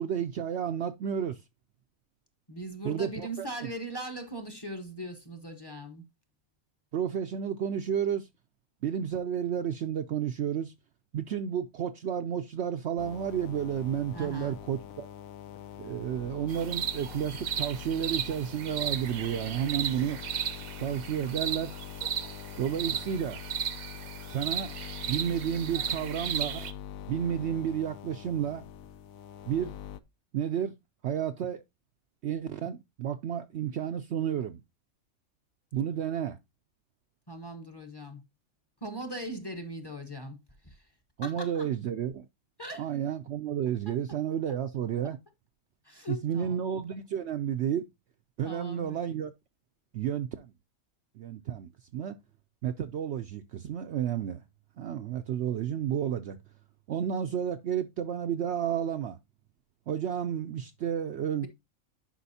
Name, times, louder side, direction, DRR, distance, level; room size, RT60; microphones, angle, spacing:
voice 1, 0.0-1.4 2.8-3.5 6.9-8.3 8.8-10.7 11.1-15.1 15.8-20.2 20.8-21.7 22.6-23.4 24.3-24.7 25.1-26.7 27.1-28.6 29.5-29.7 30.3-30.7 31.0-31.6 32.2-34.6 35.7-36.4 41.2-42.3 42.8-45.2 46.1-47.8 48.4-49.3 49.9-50.5 51.2-52.2 52.6-54.4 54.8-56.4 56.9-59.2 59.9-61.5, right 9 dB, 65° right, 0.7 m, -31 dB
voice 2, 2.5-6.1 14.1-14.6 37.3-38.2 38.8-40.4 40.6-40.9 41.2-41.7 42.6-42.9 43.9-44.0 45.8-46.6 48.4-49.0, right 1 dB, 20° left, 0.9 m, -40 dB
sound 1, 13.0-30.0, left 9 dB, 75° left, 1.0 m, -44 dB
sound 2, 16.5-26.7, right 8 dB, 80° right, 1.2 m, -35 dB
10.0 x 5.1 x 2.7 m
omnidirectional pair, 1.5 m